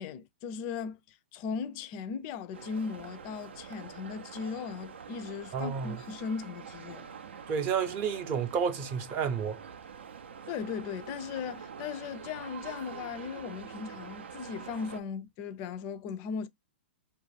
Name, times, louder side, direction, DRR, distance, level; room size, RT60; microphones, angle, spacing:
voice 1, 0.0-7.1 10.5-16.5, left 6 dB, 40° left, 0.4 m, -38 dB
sound 1, 2.5-15.0, right 6 dB, 85° right, 0.4 m, -46 dB
voice 2, 5.5-6.0 7.5-9.6, right 7 dB, 35° right, 0.6 m, -30 dB
2.4 x 2.2 x 3.1 m
hypercardioid pair, 125°, 6 cm